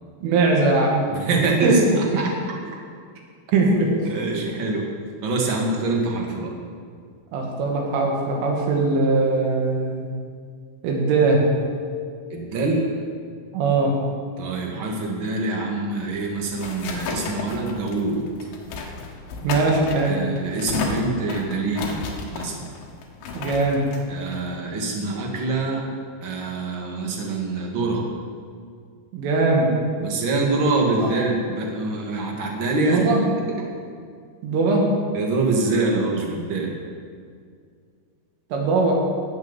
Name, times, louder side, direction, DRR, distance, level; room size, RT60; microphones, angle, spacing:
voice 1, 0.2-1.0 1.6-1.8 3.5-3.9 7.3-10.1 10.8-11.5 13.5-14.0 19.4-20.2 23.3-23.8 29.1-29.7 31.0-31.1 32.8-33.2 34.4-34.9 38.5-38.9, right 3 dB, 85° right, -1 dB, 4.8 m, -20 dB
voice 2, 1.1-2.3 4.0-4.9 5.2-6.5 12.3-12.9 14.4-18.2 20.0-22.0 22.3-22.7 24.1-25.8 26.2-28.0 30.0-33.2 35.1-36.7, right 3 dB, 45° right, -1 dB, 1.6 m, -25 dB
sound 1, 16.0-25.3, left 4 dB, 80° left, 3.8 m, -34 dB
18.0 x 8.2 x 7.2 m, 2.1 s
omnidirectional pair, 5.5 m